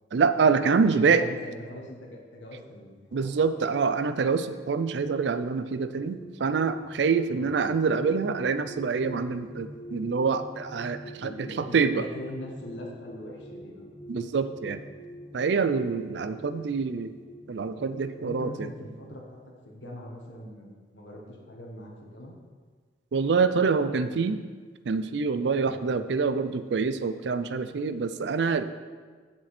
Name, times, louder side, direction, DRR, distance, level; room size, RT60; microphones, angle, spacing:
voice 1, 0.1-1.2 3.1-11.3 11.7-12.0 14.1-14.8 15.3-17.1 17.5-18.7 23.1-24.4 24.9-28.7, right 5 dB, 65° right, 11 dB, 0.4 m, -26 dB
voice 2, 0.7-3.5 7.3-7.5 11.1-13.9 18.2-19.4 19.6-22.3 25.6-25.8, left 1 dB, 80° left, -1 dB, 1.4 m, -41 dB
sound 1, 5.7-18.5, right 1 dB, 35° left, 1.3 m, -45 dB
7.5 x 7.5 x 4.3 m, 1.5 s
head